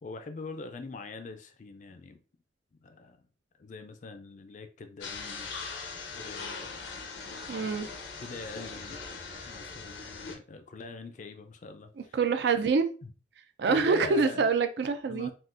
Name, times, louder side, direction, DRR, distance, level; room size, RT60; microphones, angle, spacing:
voice 1, 0.0-2.2 2.8-3.2 3.6-5.5 6.1-6.7 8.2-9.1 9.4-12.2 13.0-13.1 13.7-14.5 15.1-15.3, left 3 dB, 40° left, 0.4 m, -43 dB
sound 1, 5.0-10.4, left 4 dB, 85° left, 0.6 m, -40 dB
voice 2, 7.5-7.9 12.0-12.9 13.6-15.3, right 5 dB, 60° right, 0.4 m, -26 dB
3.6 x 2.4 x 2.4 m
head